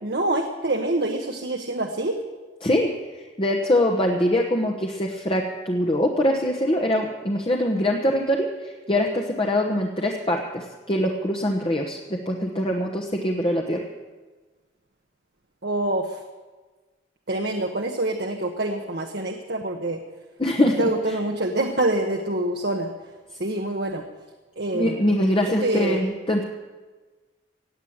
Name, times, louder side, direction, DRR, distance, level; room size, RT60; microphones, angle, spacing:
voice 1, 0.0-2.2 15.6-16.2 17.3-20.0 20.8-22.9 23.4-24.0 24.6-25.1 25.6-26.0, right 2 dB, 60° right, 3 dB, 1.1 m, -26 dB
voice 2, 3.1-13.8 20.4-21.1 24.7-26.4, left 1 dB, 30° left, 1 dB, 1.1 m, -23 dB
17.5 x 8.2 x 8.7 m, 1.3 s
head